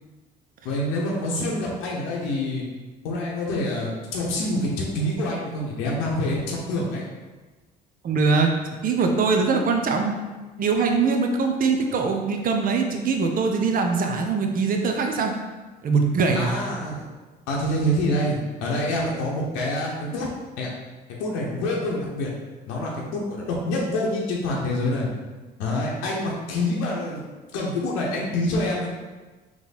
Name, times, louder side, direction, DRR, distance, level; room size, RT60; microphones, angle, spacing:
voice 1, 0.6-2.6 3.0-7.1 16.4-17.0 17.5-20.3 20.6-20.7 21.2-22.3 22.7-25.1 25.6-28.9, left 1 dB, 85° left, -3 dB, 0.8 m, -26 dB
voice 2, 8.0-10.1 10.6-15.3 15.8-16.5, right 4 dB, 45° right, 3 dB, 0.6 m, -22 dB
3.6 x 3.0 x 4.1 m, 1.3 s
supercardioid pair, 70°, 19 cm